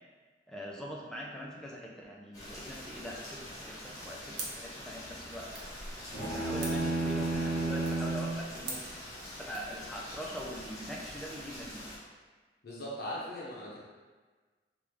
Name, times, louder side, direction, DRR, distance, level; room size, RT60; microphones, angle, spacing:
voice 1, 0.5-5.5 6.1-8.8 9.3-11.8, equal, 5° left, -4 dB, 0.4 m, -42 dB
Rain, 2.3-12.0, left 1 dB, 20° left, 0.9 m, -45 dB
sound 1, 4.3-9.7, right 3 dB, 75° right, 0.7 m, -47 dB
sound 2, 6.1-8.4, right 2 dB, 25° right, 1.3 m, -31 dB
voice 2, 12.6-13.8, equal, 60° left, -6 dB, 0.7 m, -39 dB
3.4 x 2.4 x 3.1 m, 1.4 s
head